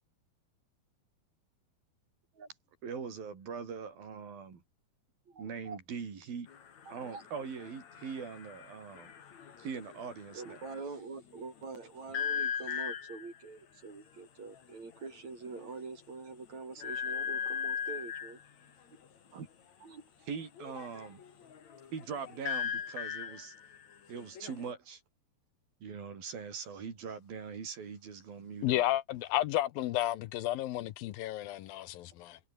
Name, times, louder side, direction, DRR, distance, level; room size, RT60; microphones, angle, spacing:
voice 1, 2.8-4.6 5.4-6.5 6.9-9.1 9.6-10.6 19.3-19.5 20.3-21.2 21.9-23.5 24.1-25.0 25.8-28.8, right 6 dB, 70° right, 6.0 m, -42 dB
voice 2, 5.3-5.8 6.9-7.2 10.3-18.4 19.8-20.0, right 4 dB, 45° right, 7.0 m, -45 dB
sound 1, 6.5-10.9 12.1-13.4 14.5-14.6 14.9-15.2 15.6-15.7 16.8-18.4 20.6-24.7, left 7 dB, 50° left, 3.6 m, -39 dB
voice 3, 28.6-32.4, left 14 dB, 75° left, 2.7 m, -32 dB
omnidirectional pair, 4.3 m